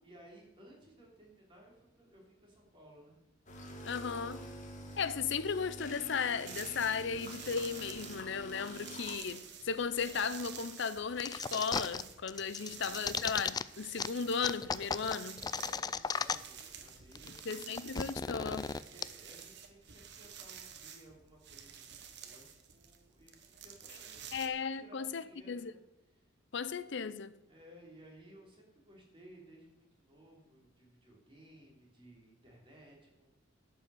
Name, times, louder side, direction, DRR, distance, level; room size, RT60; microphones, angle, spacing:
voice 1, 0.0-3.2 12.4-13.5 15.5-17.8 18.9-25.8 26.1-26.3 27.5-33.3, equal, 25° right, 3.4 m, -59 dB
sound 1, 3.5-9.2, equal, 40° left, 1.9 m, -47 dB
voice 2, 3.8-4.5 5.0-15.4 17.5-18.8 24.3-25.7 26.5-27.3, left 6 dB, 60° left, 0.6 m, -36 dB
sound 2, 6.5-24.5, right 8 dB, 60° right, 1.3 m, -50 dB
sound 3, 11.2-12.0 12.3-13.6 14.0-14.1 14.4-16.6 16.9-17.0 17.2-19.0, left 5 dB, 20° left, 0.3 m, -35 dB
11.5 x 5.6 x 7.9 m
head